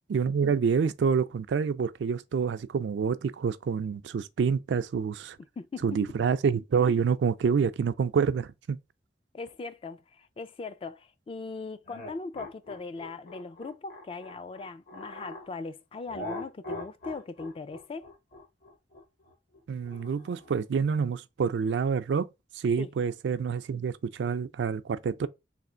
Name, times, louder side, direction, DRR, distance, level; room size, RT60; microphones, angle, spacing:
voice 1, 0.1-5.4 5.8-8.8 19.7-22.3 22.5-25.3, right 6 dB, 85° right, 0.3 m, -27 dB
voice 2, 5.6-6.0 9.3-18.1 22.8-22.9, left 4 dB, 30° left, 0.3 m, -39 dB
sound 1, 11.9-15.5 16.1-20.6, left 2 dB, 55° left, 1.1 m, -42 dB
3.4 x 2.4 x 3.8 m
head